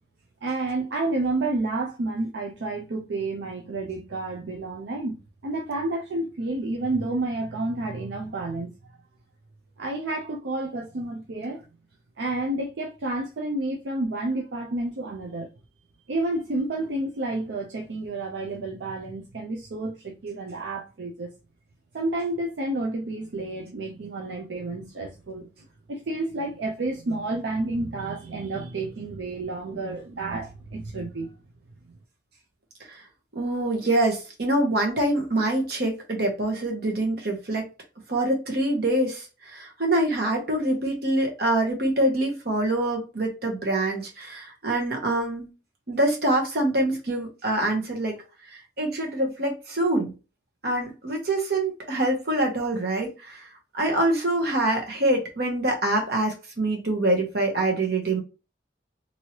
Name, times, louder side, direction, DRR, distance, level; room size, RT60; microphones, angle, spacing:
voice 1, 0.4-5.2 5.4-9.0 9.8-11.6 12.2-15.5 16.1-21.3 21.9-25.5 25.9-31.3, right 2 dB, 80° right, 0.5 m, -30 dB
voice 2, 33.3-37.7 38.1-45.5 45.9-48.2 48.8-50.1 50.6-53.5 53.7-58.2, right 1 dB, 60° right, 1.0 m, -25 dB
3.0 x 2.6 x 2.9 m
head